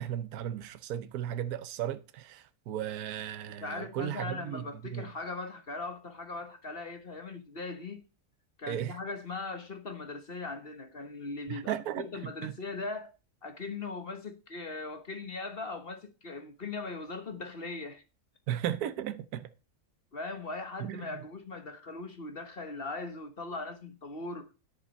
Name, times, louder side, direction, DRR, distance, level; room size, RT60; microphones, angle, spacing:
voice 1, 0.0-4.7 4.9-5.1 8.7-8.9 11.5-12.5 18.5-19.5 20.8-21.1, right 11 dB, 75° right, 1.3 m, -35 dB
voice 2, 3.6-8.0 8.6-13.1 13.4-18.0 20.1-24.5, left 3 dB, 40° left, 1.3 m, -39 dB
10.0 x 7.3 x 5.3 m
omnidirectional pair, 1.6 m